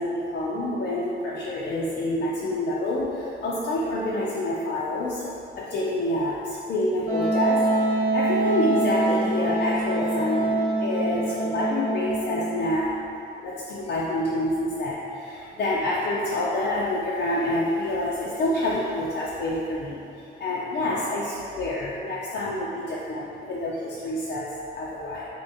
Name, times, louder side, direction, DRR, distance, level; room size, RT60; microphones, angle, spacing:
voice 1, 0.0-5.3 5.6-12.9 13.4-20.0 20.4-25.3, left 1 dB, 55° left, -6 dB, 0.4 m, -27 dB
Wind instrument woodwind instrument, 7.1-12.6, right 2 dB, 90° right, 0.9 m, -25 dB
3.4 x 2.9 x 2.7 m, 2.7 s
cardioid pair, 90°, 20 cm